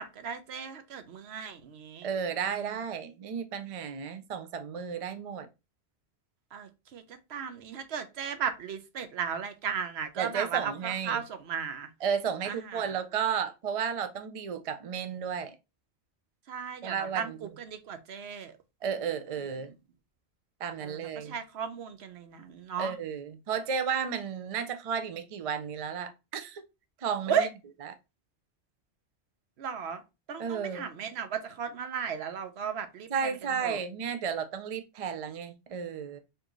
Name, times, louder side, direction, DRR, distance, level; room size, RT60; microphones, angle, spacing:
voice 1, 0.0-2.1 2.6-2.7 6.5-11.9 12.4-12.9 16.5-18.5 19.6-19.7 20.8-22.9 27.3-27.5 29.6-30.0 30.3-33.3 33.6-33.8, right 7 dB, 70° right, 0.9 m, -35 dB
voice 2, 2.0-5.5 10.2-11.2 12.0-15.6 16.8-17.6 18.8-19.7 20.6-21.3 22.8-26.6 27.0-27.5 30.4-30.9 33.1-36.2, right 7 dB, 45° right, 0.4 m, -33 dB
4.4 x 2.7 x 2.9 m
omnidirectional pair, 1.2 m